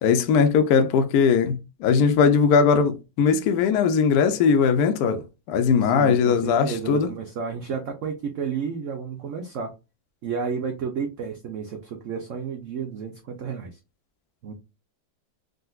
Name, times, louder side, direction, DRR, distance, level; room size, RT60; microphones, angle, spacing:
voice 1, 0.0-7.1, left 6 dB, 70° left, 0.9 m, -20 dB
voice 2, 5.8-9.7 10.2-13.8 14.4-14.5, right 6 dB, 85° right, 0.6 m, -31 dB
3.7 x 2.5 x 2.3 m
omnidirectional pair, 2.0 m